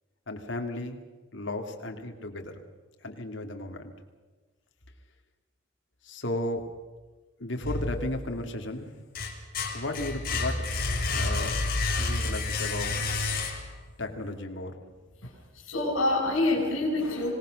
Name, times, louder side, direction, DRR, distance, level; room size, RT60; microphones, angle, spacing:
voice 1, 0.3-1.0 1.3-2.6 3.0-3.9 6.0-6.7 7.4-8.9 9.7-10.8 11.1-11.6 12.0-13.1 14.0-14.8, left 1 dB, 65° left, 4 dB, 2.5 m, -34 dB
sound 1, 7.6-8.5 8.9-13.9, left 3 dB, 45° left, 3.7 m, -30 dB
voice 2, 15.2-17.3, left 2 dB, 80° left, -2 dB, 5.3 m, -27 dB
26.0 x 18.5 x 6.4 m, 1.3 s
head